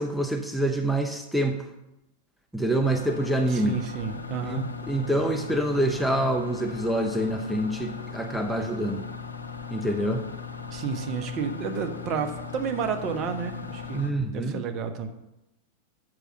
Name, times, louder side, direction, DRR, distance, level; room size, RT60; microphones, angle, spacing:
voice 1, 0.0-1.7 2.5-3.8 4.5-9.0 9.7-10.2 13.9-14.6, right 1 dB, ahead, 4 dB, 0.8 m, -26 dB
sound 1, 2.8-14.1, left 5 dB, 80° left, 0.7 m, -38 dB
voice 2, 3.5-4.6 10.7-14.0 14.3-15.1, right 6 dB, 35° right, 6 dB, 1.1 m, -31 dB
7.5 x 6.4 x 6.6 m, 0.93 s
figure-of-eight pair, 90°, 0 cm